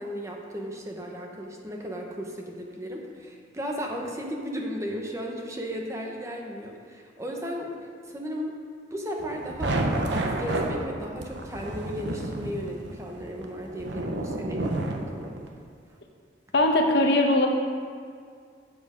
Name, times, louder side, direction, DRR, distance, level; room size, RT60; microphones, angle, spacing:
voice 1, 0.0-7.8 8.1-8.5 8.9-9.8 10.1-15.4, equal, 15° right, 0 dB, 1.0 m, -35 dB
sound 1, 9.2-15.5, right 1 dB, 70° right, 0.9 m, -31 dB
voice 2, 16.5-17.5, left 2 dB, 65° left, 3 dB, 1.0 m, -20 dB
7.8 x 7.4 x 5.2 m, 2.1 s
head